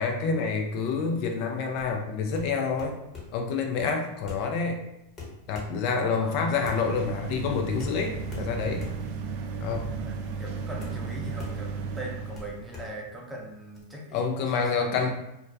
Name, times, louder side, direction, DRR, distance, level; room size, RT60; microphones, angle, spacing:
voice 1, 0.0-3.0 3.3-4.8 5.5-8.9 9.6-9.9 14.1-15.1, left 5 dB, 55° left, 3 dB, 0.3 m, -28 dB
sound 1, 1.8-13.8, left 4 dB, 25° left, 0.9 m, -45 dB
sound 2, 6.1-12.7, right 4 dB, 55° right, 0.3 m, -35 dB
voice 2, 6.2-6.6 10.0-15.1, right 1 dB, 5° right, -3 dB, 0.6 m, -41 dB
2.2 x 2.2 x 2.5 m, 0.86 s
hypercardioid pair, 110°, 0 cm